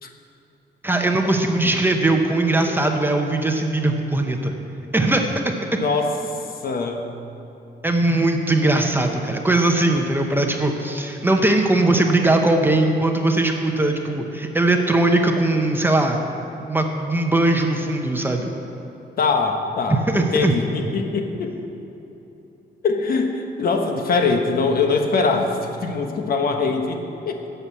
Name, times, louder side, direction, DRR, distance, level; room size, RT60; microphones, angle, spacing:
voice 1, 0.8-4.5 4.9-5.3 7.8-16.2 16.7-18.5 19.9-20.5, right 2 dB, 10° right, 3 dB, 0.8 m, -20 dB
voice 2, 5.7-6.1 6.6-7.0 19.2-21.5 22.8-27.0 27.2-27.4, left 4 dB, 55° left, 3 dB, 1.2 m, -22 dB
11.5 x 6.8 x 8.4 m, 3.0 s
wide cardioid pair, 155°, 18 cm